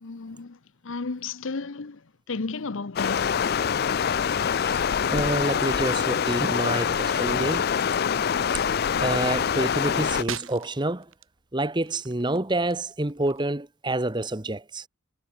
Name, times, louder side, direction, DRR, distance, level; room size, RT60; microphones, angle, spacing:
voice 1, 0.0-2.0 2.3-3.4, left 4 dB, 65° left, 0.8 m, -33 dB
Stream, 3.0-10.2, left 7 dB, 45° left, 0.4 m, -25 dB
voice 2, 4.3-7.7 8.5-8.7 9.0-11.1 11.5-14.9, right 2 dB, 20° right, 1.1 m, -28 dB
sound 1, 7.6-13.4, right 7 dB, 70° right, 5.1 m, -44 dB
head